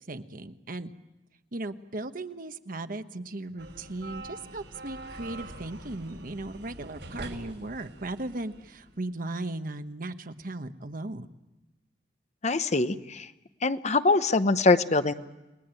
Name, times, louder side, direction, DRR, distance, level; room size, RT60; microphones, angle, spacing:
voice 1, 0.1-0.9 1.5-11.3, right 2 dB, 50° right, 9 dB, 1.1 m, -37 dB
sound 1, 3.6-9.0, right 2 dB, 80° right, 5.6 m, -44 dB
voice 2, 12.4-13.3 13.6-15.1, left 3 dB, 40° left, 11 dB, 0.9 m, -23 dB
29.5 x 20.0 x 9.1 m, 1.1 s
head